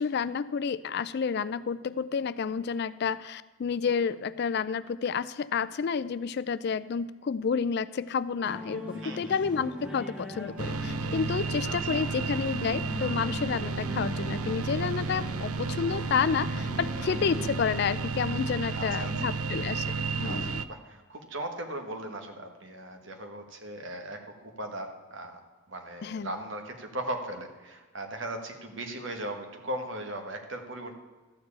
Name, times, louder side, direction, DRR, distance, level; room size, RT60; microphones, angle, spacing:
voice 1, 0.0-20.6 26.0-26.3, left 6 dB, 50° left, 16 dB, 0.3 m, -30 dB
sound 1, 8.4-17.6, left 1 dB, 5° right, 1.7 m, -40 dB
voice 2, 9.0-9.3 11.6-12.0 16.9-17.1 18.6-19.1 20.2-25.4 25.7-30.9, right 1 dB, 60° right, 4 dB, 1.5 m, -38 dB
sound 2, 10.6-20.7, right 4 dB, 90° right, 0.5 m, -32 dB
13.5 x 4.7 x 8.7 m, 1.3 s
head